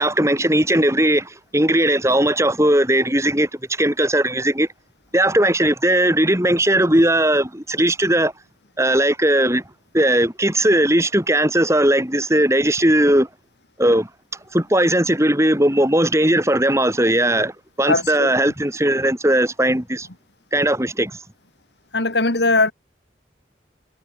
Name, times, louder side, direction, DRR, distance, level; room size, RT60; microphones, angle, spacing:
voice 1, 0.0-4.7 5.1-8.3 8.8-9.6 9.9-13.3 13.8-14.1 14.5-20.1 20.5-21.2, right 1 dB, 15° right, 5.4 m, -18 dB
voice 2, 17.9-18.3 21.9-22.7, left 3 dB, 65° left, 3.3 m, -19 dB
head